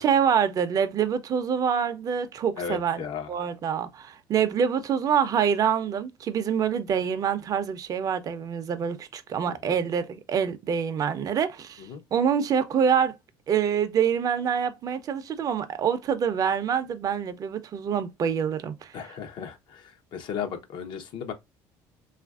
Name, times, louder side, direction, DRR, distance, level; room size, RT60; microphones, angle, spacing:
voice 1, 0.0-3.0 3.3-11.8 12.1-13.1 13.5-18.9, right 7 dB, 45° right, 0.5 m, -26 dB
voice 2, 2.6-3.4 9.5-9.8 11.8-12.0 18.9-21.3, left 7 dB, 65° left, 0.7 m, -35 dB
3.1 x 2.4 x 2.3 m
supercardioid pair, 95°, 9 cm